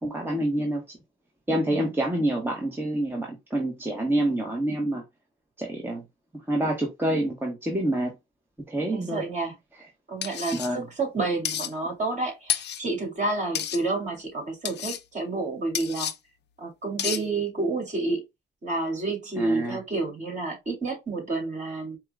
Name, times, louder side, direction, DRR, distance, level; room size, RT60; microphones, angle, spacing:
voice 1, 0.0-1.0 1.5-5.0 5.6-6.0 6.3-8.2 8.7-9.2 10.5-10.9 19.4-19.8, right 1 dB, 10° right, 1.1 m, -27 dB
voice 2, 8.9-9.5 10.1-16.1 16.6-18.2 18.6-22.0, right 3 dB, 35° right, 2.7 m, -29 dB
sound 1, 10.2-10.7 11.4-11.7 12.5-12.8 13.5-13.8 14.6-15.0 15.7-16.1 17.0-17.2, left 10 dB, 60° left, 0.7 m, -30 dB
4.6 x 2.3 x 3.6 m
cardioid pair, 90°, 20 cm